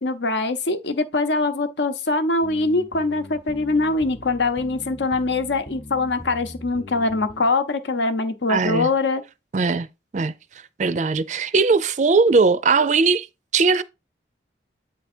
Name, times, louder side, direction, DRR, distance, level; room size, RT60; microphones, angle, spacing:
voice 1, 0.0-9.2, left 3 dB, 75° left, 0.8 m, -23 dB
sound 1, 2.4-7.5, left 1 dB, 30° left, 0.7 m, -40 dB
voice 2, 8.5-8.9 9.5-9.9 10.1-10.3 10.8-13.3 13.5-13.8, right 4 dB, 40° right, 0.4 m, -19 dB
8.4 x 3.4 x 4.3 m
head